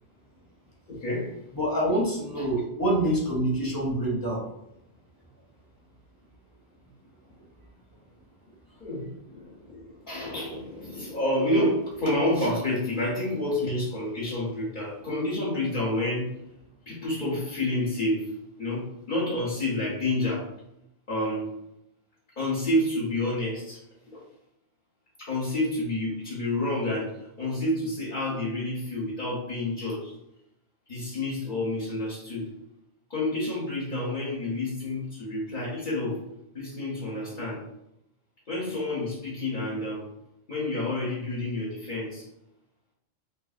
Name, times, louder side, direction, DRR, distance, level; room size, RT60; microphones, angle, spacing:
voice 1, 0.9-1.4 2.3-2.5 8.8-16.4 16.9-20.5 21.1-21.5 22.4-24.2 25.2-30.2 30.9-32.5 33.1-36.2 36.5-37.6 38.5-40.1 40.5-42.3, left 1 dB, 50° left, -7 dB, 0.9 m, -29 dB
voice 2, 1.5-4.4, right 1 dB, 35° left, -4 dB, 0.4 m, -26 dB
2.7 x 2.6 x 2.4 m, 0.81 s
omnidirectional pair, 1.1 m